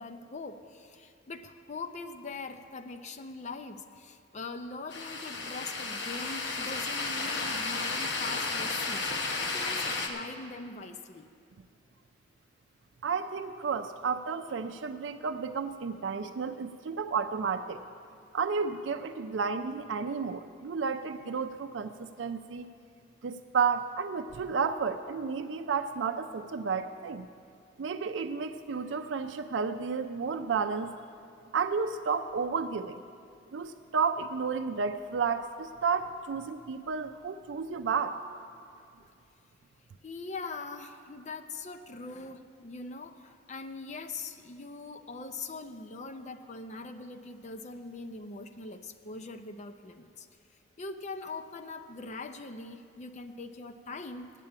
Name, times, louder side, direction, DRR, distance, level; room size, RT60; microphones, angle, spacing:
voice 1, 0.0-11.3 38.7-39.1 40.0-50.3 50.8-54.3, left 3 dB, 40° left, 8 dB, 0.5 m, -42 dB
sound 1, 4.9-10.1, left 3 dB, 70° left, 1.1 m, -33 dB
voice 2, 13.0-17.8 18.3-22.7 23.2-27.3 27.8-30.9 31.5-33.0 33.5-38.2, right 5 dB, 85° right, 8 dB, 0.4 m, -32 dB
8.8 x 8.2 x 8.6 m, 2.4 s
head